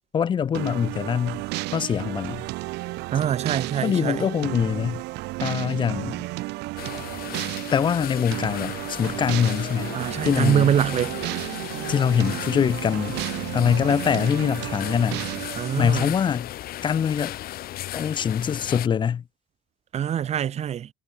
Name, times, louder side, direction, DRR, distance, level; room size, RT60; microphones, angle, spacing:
voice 1, 0.1-1.4 1.7-2.5 3.8-5.0 5.4-6.2 7.7-10.0 10.2-10.7 11.9-13.2 13.5-15.3 15.8-16.5 16.8-17.4 17.9-19.2, left 7 dB, 30° left, 0.3 m, -23 dB
sound 1, 0.5-16.1, right 21 dB, 90° right, 0.8 m, -33 dB
voice 2, 3.1-4.3 9.9-11.1 15.6-16.1 19.9-20.9, right 9 dB, 40° right, 0.5 m, -24 dB
sound 2, 6.8-18.9, left 14 dB, 65° left, 0.8 m, -36 dB
cardioid pair, 110°, 17 cm